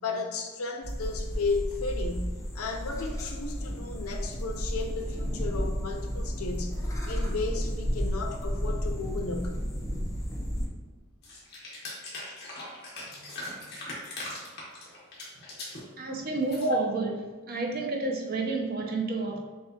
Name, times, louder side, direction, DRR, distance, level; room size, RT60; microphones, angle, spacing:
voice 1, 0.0-6.8 7.1-9.6 16.6-16.8, left 3 dB, 85° left, 3 dB, 0.6 m, -33 dB
sound 1, 0.8-10.7, equal, 15° left, 0.5 m, -32 dB
sound 2, 11.2-15.8 16.2-16.7, left 2 dB, 50° left, 1.2 m, -40 dB
voice 2, 13.1-13.6 14.0-14.1 16.0-17.2 17.5-19.4, right 3 dB, 45° right, 1 dB, 0.7 m, -31 dB
6.5 x 2.4 x 2.8 m, 1.4 s
head